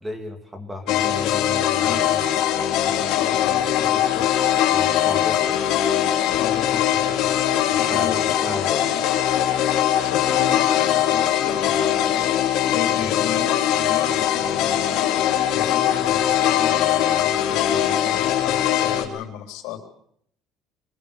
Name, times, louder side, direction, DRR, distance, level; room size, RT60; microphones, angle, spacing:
voice 1, 0.0-2.2 4.7-5.6 7.7-8.9 13.0-13.1, left 1 dB, 5° right, 6 dB, 2.7 m, -34 dB
sound 1, 0.9-19.0, left 11 dB, 65° left, 3.4 m, -21 dB
voice 2, 1.8-2.3 2.8-4.3 6.4-8.5 10.0-12.2 12.7-19.8, left 9 dB, 90° left, 5 dB, 3.7 m, -34 dB
24.0 x 21.5 x 6.8 m, 0.67 s
cardioid pair, 165°, 0 cm